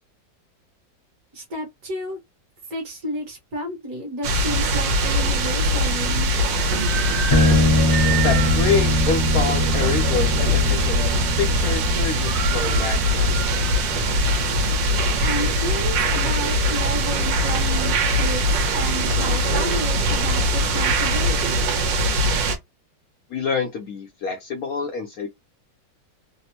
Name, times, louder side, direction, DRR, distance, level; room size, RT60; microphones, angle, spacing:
voice 1, 1.3-2.2 2.7-6.3 15.2-21.8, equal, 55° right, 1.5 m, -32 dB
sound 1, 4.2-22.6, equal, 90° right, 1.5 m, -21 dB
sound 2, 6.5-10.1 10.6-10.7 11.1-11.5 11.7-11.8 12.0-14.0 14.4-14.5 15.1-16.4, right 8 dB, 75° right, 1.5 m, -32 dB
sound 3, 7.3-16.8, left 2 dB, 30° left, 0.7 m, -25 dB
voice 2, 8.2-13.4 23.3-25.3, left 5 dB, 65° left, 1.0 m, -27 dB
3.4 x 2.0 x 2.8 m
omnidirectional pair, 1.9 m